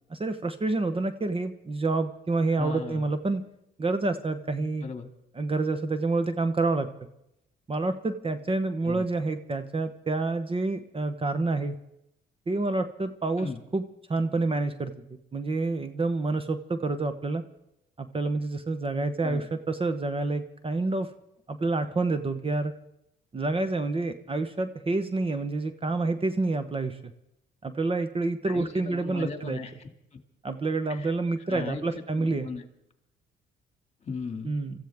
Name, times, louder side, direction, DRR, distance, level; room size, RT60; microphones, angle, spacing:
voice 1, 0.1-3.4 3.8-4.9 5.4-6.9 7.7-11.8 12.5-13.8 14.1-14.9 15.3-17.4 18.0-21.1 21.5-22.7 23.3-27.0 27.6-29.6 30.4-32.5 34.4-34.7, right 3 dB, 25° right, 10 dB, 1.1 m, -28 dB
voice 2, 2.5-3.1 4.8-5.1 8.8-9.0 13.4-13.6 19.2-19.5 28.5-30.2 30.9-31.1 31.4-32.6 34.0-34.6, left 4 dB, 35° left, 6 dB, 2.2 m, -37 dB
26.0 x 14.5 x 3.6 m, 0.84 s
cardioid pair, 90°, 20 cm